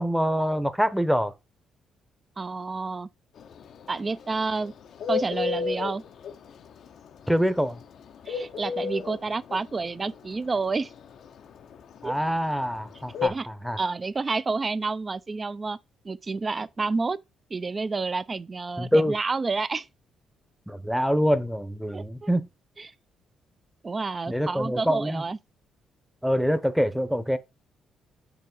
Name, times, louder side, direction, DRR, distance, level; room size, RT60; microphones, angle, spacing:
voice 1, 0.0-1.3 7.3-7.8 12.0-13.8 18.8-19.1 20.7-22.4 24.3-25.2 26.2-27.4, equal, ahead, 0.8 m, -25 dB
voice 2, 2.4-3.1 3.9-4.7 5.1-6.0 8.3-10.9 12.0-12.1 13.2-13.5 13.8-15.8 16.0-17.2 17.5-19.9 21.9-22.3 22.8-22.9 23.8-25.4, right 4 dB, 30° right, 0.5 m, -29 dB
Bird, 3.4-13.3, left 6 dB, 65° left, 0.6 m, -32 dB
7.0 x 3.1 x 6.0 m
cardioid pair, 90°, 0 cm